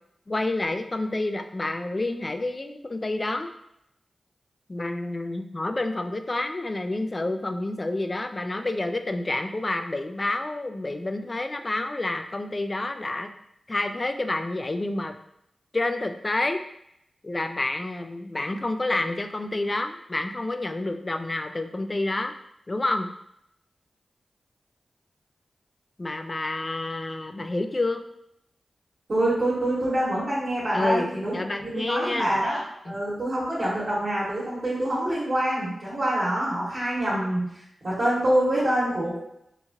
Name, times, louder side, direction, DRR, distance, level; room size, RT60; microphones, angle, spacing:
voice 1, 0.3-3.5 4.7-13.3 13.7-15.2 15.7-16.6 17.2-22.3 22.7-23.1 26.0-28.0 30.7-31.1 31.3-32.4 32.9-33.0, left 2 dB, 35° left, 7 dB, 0.3 m, -29 dB
voice 2, 29.1-32.6 32.9-39.2, right 1 dB, 55° right, -10 dB, 1.1 m, -26 dB
3.0 x 2.4 x 2.7 m, 0.77 s
cardioid pair, 55°, 0 cm